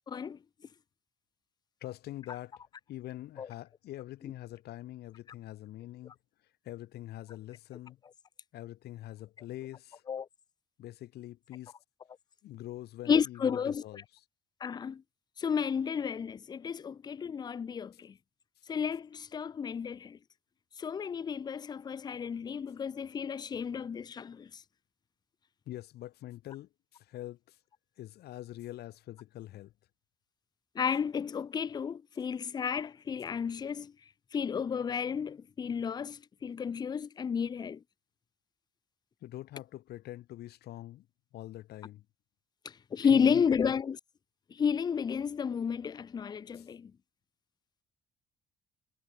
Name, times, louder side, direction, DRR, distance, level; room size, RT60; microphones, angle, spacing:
voice 1, 0.1-0.4 3.4-3.5 10.1-10.3 13.1-13.8 14.6-15.0 15.4-18.1 18.7-20.2 20.8-24.5 30.8-33.9 34.3-37.8 42.9-44.0 44.5-46.9, left 7 dB, 25° left, 0.4 m, -32 dB
voice 2, 1.8-2.6 2.9-6.1 6.6-8.0 8.5-10.0 10.8-11.7 12.4-14.0 25.7-27.6 28.0-29.7 39.2-41.1 41.3-42.0 43.0-43.5 46.5-46.7, left 14 dB, 75° left, 4.6 m, -44 dB
cardioid pair, 110°, 17 cm